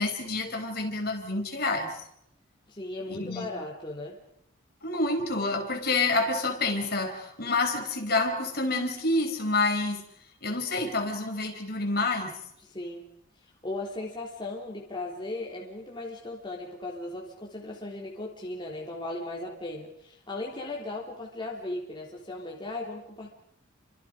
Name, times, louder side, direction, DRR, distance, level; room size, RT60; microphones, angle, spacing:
voice 1, 0.0-2.0 3.1-3.4 4.8-10.1 10.4-12.4, left 2 dB, 45° left, 4 dB, 4.5 m, -28 dB
voice 2, 2.7-4.2 12.6-13.1 13.4-23.3, left 2 dB, 20° left, -1 dB, 3.4 m, -37 dB
30.0 x 25.5 x 5.1 m, 0.73 s
head